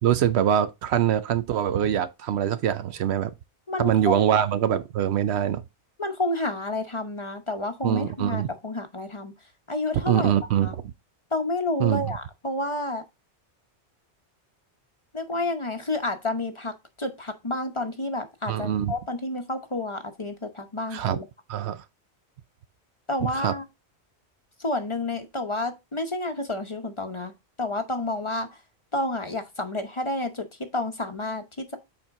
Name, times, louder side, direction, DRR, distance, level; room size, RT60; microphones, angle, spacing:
voice 1, 0.0-3.3 3.8-5.6 7.8-8.5 10.1-10.9 11.8-12.1 18.5-18.9 20.9-21.2 21.5-21.8 23.2-23.5, right 10 dB, 75° right, 0.9 m, -24 dB
voice 2, 3.7-4.3 6.0-9.3 9.7-10.3 10.6-10.7 11.3-13.0 15.1-21.3 23.1-23.6 24.6-27.3 27.6-28.5 28.9-31.8, left 2 dB, 30° left, 0.9 m, -30 dB
7.8 x 4.4 x 3.6 m
omnidirectional pair, 1.1 m